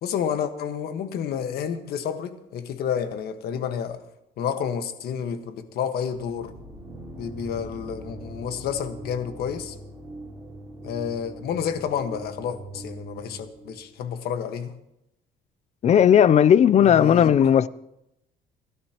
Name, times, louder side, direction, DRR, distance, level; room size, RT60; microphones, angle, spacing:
voice 1, 0.0-4.0 4.4-6.6 7.2-9.8 10.8-14.7 16.8-17.5, left 8 dB, 70° left, 1.5 m, -30 dB
sound 1, 6.1-14.0, right 1 dB, 15° right, 4.4 m, -41 dB
voice 2, 15.8-17.7, left 9 dB, 40° left, 0.5 m, -16 dB
28.0 x 12.5 x 3.0 m
cardioid pair, 110°, 17 cm